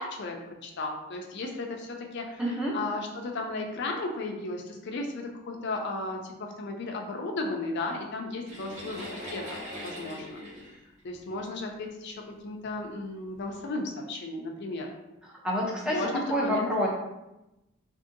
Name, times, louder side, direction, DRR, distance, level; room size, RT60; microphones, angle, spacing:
voice 1, 0.0-2.4 2.7-10.4 11.0-14.9 15.9-16.7, left 2 dB, 55° left, 2 dB, 0.4 m, -35 dB
voice 2, 2.4-2.7 15.2-16.0 16.3-16.9, equal, 5° right, -4 dB, 0.5 m, -28 dB
sound 1, 8.4-11.8 12.6-12.7 13.3-13.5, equal, 35° right, 1.0 m, -41 dB
2.6 x 2.6 x 2.5 m, 0.96 s
head